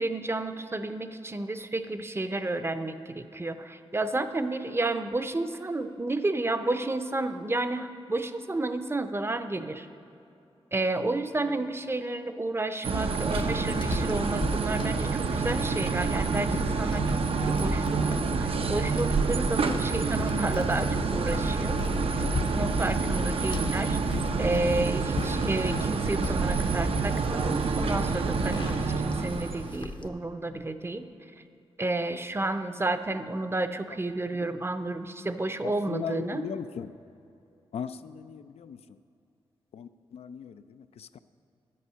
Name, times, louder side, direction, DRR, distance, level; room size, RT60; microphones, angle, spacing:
voice 1, 0.0-9.9 10.7-21.8 22.5-24.0 24.4-31.1 31.8-36.4, right 2 dB, 25° right, 9 dB, 0.6 m, -31 dB
sound 1, 12.8-29.8, right 4 dB, 70° right, 0.6 m, -28 dB
sound 2, 13.1-30.1, left 3 dB, 50° left, 0.8 m, -37 dB
voice 2, 35.6-37.0 37.7-38.8 39.7-41.2, left 7 dB, 80° left, 11 dB, 0.4 m, -38 dB
11.0 x 8.3 x 5.7 m, 2.6 s
cardioid pair, 70°, 10 cm